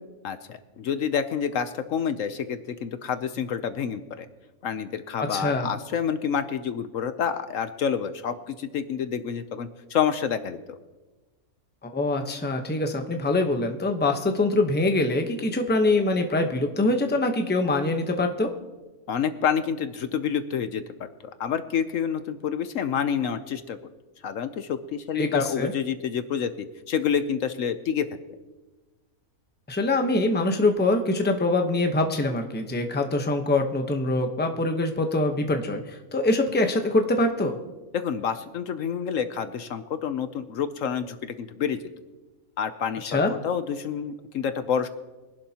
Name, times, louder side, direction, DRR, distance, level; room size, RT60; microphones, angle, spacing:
voice 1, 0.2-4.3 4.6-10.8 19.1-20.8 21.4-23.8 24.2-28.1 37.9-41.8 42.6-44.9, left 7 dB, 65° left, 10 dB, 1.0 m, -28 dB
voice 2, 5.3-5.7 11.9-18.5 25.1-25.7 29.7-37.6 43.0-43.3, left 2 dB, 10° left, 4 dB, 0.8 m, -24 dB
23.5 x 11.5 x 2.9 m, 1.2 s
omnidirectional pair, 1.5 m